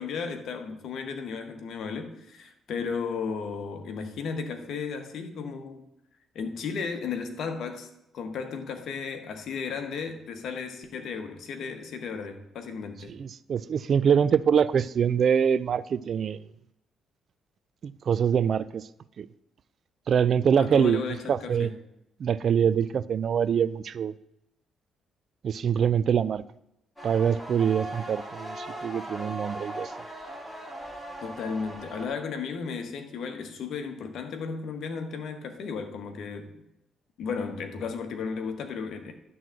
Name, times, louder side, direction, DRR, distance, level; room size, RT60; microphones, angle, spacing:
voice 1, 0.0-5.8 6.3-7.9 8.1-13.1 20.6-21.8 31.2-36.5 37.2-39.1, left 5 dB, 70° left, 1.3 m, -34 dB
voice 2, 13.1-16.4 17.8-18.8 19.2-19.3 20.1-21.7 22.2-24.1 25.4-26.4 27.0-29.9, right 7 dB, 55° right, 0.4 m, -24 dB
sound 1, 27.0-32.1, right 1 dB, ahead, 2.5 m, -39 dB
11.0 x 3.9 x 7.5 m
cardioid pair, 90°, 0 cm